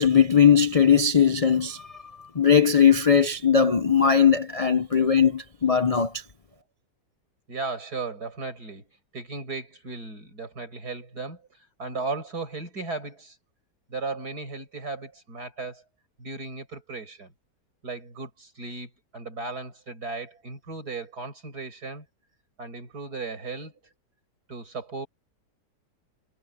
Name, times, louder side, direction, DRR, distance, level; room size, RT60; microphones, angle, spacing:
voice 1, 0.0-1.8 2.4-6.1, left 7 dB, 45° left, 0.4 m, -19 dB
voice 2, 7.5-8.9 9.1-13.4 13.9-15.8 16.2-17.3 17.8-22.1 22.6-23.8 24.5-25.1, right 3 dB, 65° right, 6.2 m, -36 dB
omnidirectional pair, 1.8 m